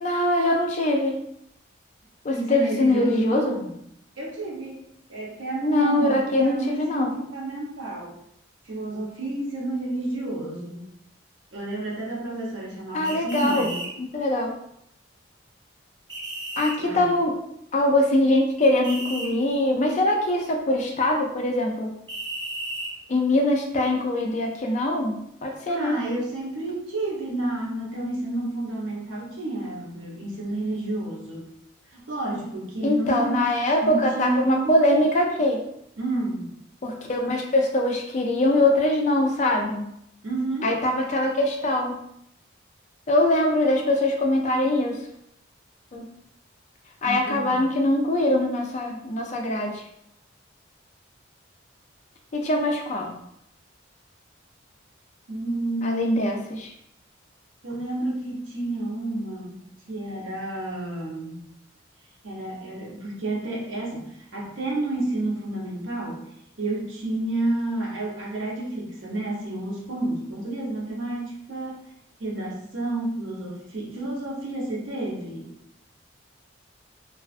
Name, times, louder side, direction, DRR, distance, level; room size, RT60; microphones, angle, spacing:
voice 1, 0.0-1.2 2.2-3.5 5.6-7.1 12.9-13.7 14.0-14.5 16.6-17.4 17.7-21.9 23.1-26.0 32.8-35.6 36.8-39.9 40.6-41.9 43.1-45.0 45.9-46.1 47.0-49.8 52.3-53.1 55.8-56.4, left 1 dB, 40° left, 2 dB, 0.4 m, -22 dB
voice 2, 2.3-3.7 4.2-4.8 5.1-8.1 8.6-10.9 11.5-13.8 16.8-17.1 25.7-31.5 31.9-33.5 33.8-34.8 36.0-36.5 40.2-40.7 47.0-47.6 55.3-56.4 57.6-59.6 59.9-61.4 62.2-66.2 66.6-71.8 72.2-75.6, right 2 dB, 85° right, -3 dB, 0.7 m, -30 dB
sound 1, 13.0-13.9 16.1-16.7 18.8-19.3 22.1-22.9, right 2 dB, 20° right, 0.5 m, -33 dB
2.4 x 2.3 x 2.4 m, 0.75 s
head